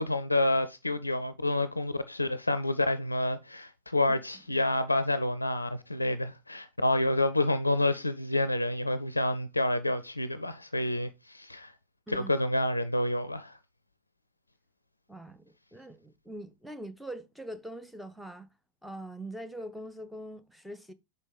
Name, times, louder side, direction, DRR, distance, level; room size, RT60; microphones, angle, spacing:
voice 1, 0.0-11.7 12.1-13.5, left 1 dB, 85° left, 0.4 m, -28 dB
voice 2, 15.1-18.5 18.8-20.9, right 1 dB, ahead, 0.7 m, -43 dB
5.4 x 5.1 x 4.0 m
figure-of-eight pair, 90°, 0 cm